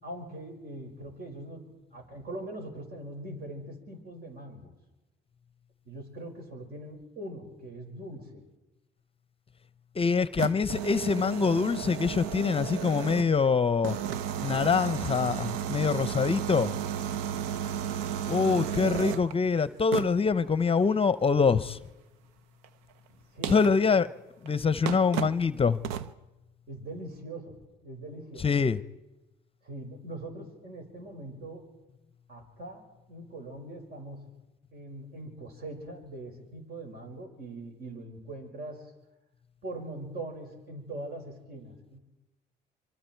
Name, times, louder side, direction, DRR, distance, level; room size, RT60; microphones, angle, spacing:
voice 1, 0.0-4.7 5.9-8.4 23.3-23.7 26.7-28.5 29.6-31.6 32.3-34.3 34.7-38.9 39.6-42.0, right 1 dB, 55° right, 5.8 m, -42 dB
voice 2, 10.0-14.0 14.4-16.7 18.3-21.8 23.5-24.1 24.4-25.8 28.4-28.8, left 5 dB, 30° left, 0.7 m, -25 dB
sound 1, 10.1-13.4 13.8-19.3 19.9-20.3 22.6-22.7 23.4-23.8 24.5-24.6 24.8-25.4 25.8-26.1, right 9 dB, 90° right, 0.7 m, -33 dB
25.5 x 24.0 x 4.6 m
supercardioid pair, 65°, 19 cm